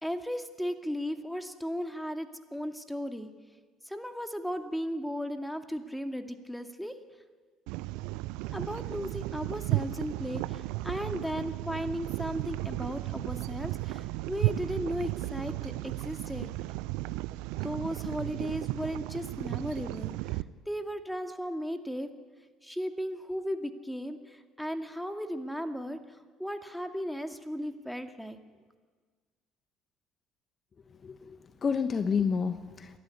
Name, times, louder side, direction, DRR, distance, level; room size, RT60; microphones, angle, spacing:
voice 1, 0.0-3.3 3.8-6.9 8.5-16.5 17.6-20.4 20.7-22.1 22.6-26.0 26.4-28.4, equal, ahead, 7 dB, 2.2 m, -36 dB
sound 1, 7.7-20.4, right 18 dB, 70° right, 0.5 m, -34 dB
voice 2, 31.0-33.0, left 6 dB, 35° left, 10 dB, 1.2 m, -30 dB
27.5 x 12.0 x 9.6 m, 1.5 s
hypercardioid pair, 60°, 0 cm